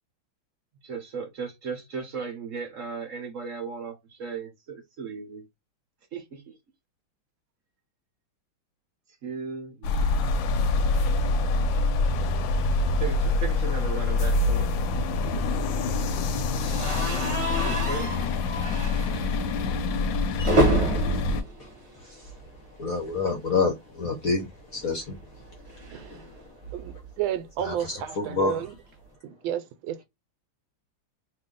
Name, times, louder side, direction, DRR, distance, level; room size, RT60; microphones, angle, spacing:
voice 1, 0.8-5.5 6.1-6.5 9.2-9.9 13.0-14.7 17.4-18.1, right 5 dB, 55° right, 0.9 m, -36 dB
sound 1, 9.8-21.4, left 3 dB, 75° left, 1.3 m, -25 dB
sound 2, 16.6-22.6 22.9-23.1 23.4-23.5 24.8-27.1, right 1 dB, 20° right, 0.9 m, -29 dB
voice 2, 22.0-26.4 27.6-28.6, left 4 dB, 60° left, 0.9 m, -30 dB
voice 3, 25.9-26.2 26.7-28.7 29.2-30.0, right 11 dB, 80° right, 1.3 m, -32 dB
3.0 x 2.6 x 3.7 m
omnidirectional pair, 2.2 m